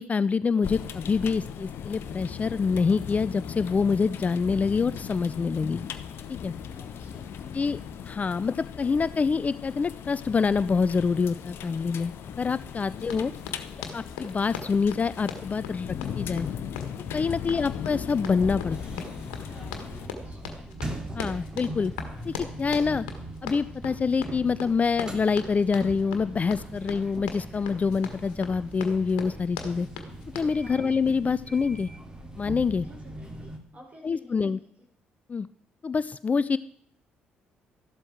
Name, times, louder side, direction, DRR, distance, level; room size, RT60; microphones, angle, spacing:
voice 1, 0.0-5.8 6.3-6.5 7.5-12.1 12.4-13.3 13.9-16.5 17.1-19.0 21.1-21.9 22.2-23.1 23.4-29.9 30.3-31.9 32.4-32.9 34.0-34.6 35.3-35.5 35.8-36.6, left 5 dB, 30° left, 18 dB, 0.4 m, -26 dB
sound 1, 0.6-20.1, left 8 dB, 55° left, 0.9 m, -38 dB
voice 2, 6.7-7.6 12.9-13.3 17.2-17.6 20.0-20.7 30.6-30.9 32.8-34.7, left 1 dB, 35° right, 0 dB, 6.5 m, -53 dB
Run, 13.0-30.6, left 6 dB, 70° left, 1.5 m, -40 dB
sound 2, 18.7-33.6, right 1 dB, 15° right, 2.8 m, -41 dB
13.5 x 12.0 x 4.6 m, 0.67 s
figure-of-eight pair, 45°, 5 cm